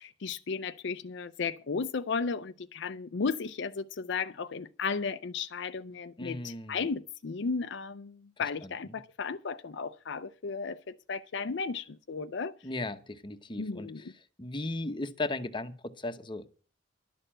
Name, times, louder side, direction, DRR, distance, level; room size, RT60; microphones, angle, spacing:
voice 1, 0.0-12.5 13.6-14.1, left 5 dB, 65° left, 0.5 m, -35 dB
voice 2, 6.2-6.9 8.6-8.7 12.6-14.1 14.4-16.5, left 2 dB, 25° left, 0.9 m, -36 dB
12.0 x 6.7 x 8.7 m
head